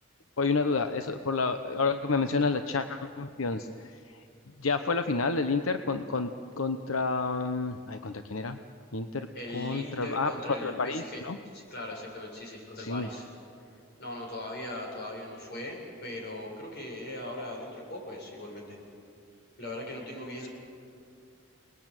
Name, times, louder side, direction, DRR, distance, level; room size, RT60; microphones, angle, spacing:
voice 1, 0.4-4.3 4.6-6.3 6.6-8.6 8.9-9.3 9.5-11.4 12.8-13.1 20.4-20.5, left 4 dB, 85° left, 8 dB, 0.9 m, -30 dB
voice 2, 9.3-11.3 11.5-13.3 14.0-18.8 19.6-20.5, left 1 dB, 55° left, -1 dB, 7.6 m, -39 dB
29.5 x 21.0 x 9.1 m, 2.4 s
head